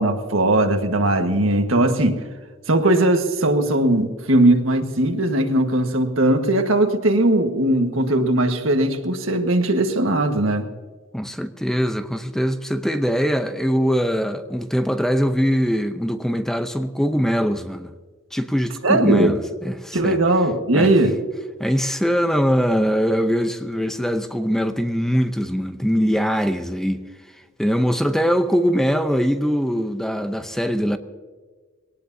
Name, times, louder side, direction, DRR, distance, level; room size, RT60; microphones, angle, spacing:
voice 1, 0.0-2.2 2.7-10.7 18.8-19.4 19.9-21.2, right 1 dB, 90° right, 1.6 m, -19 dB
voice 2, 11.1-17.9 18.3-20.2 20.7-20.9 21.6-27.0 27.6-31.0, equal, ahead, 0.7 m, -22 dB
22.0 x 18.0 x 2.7 m
head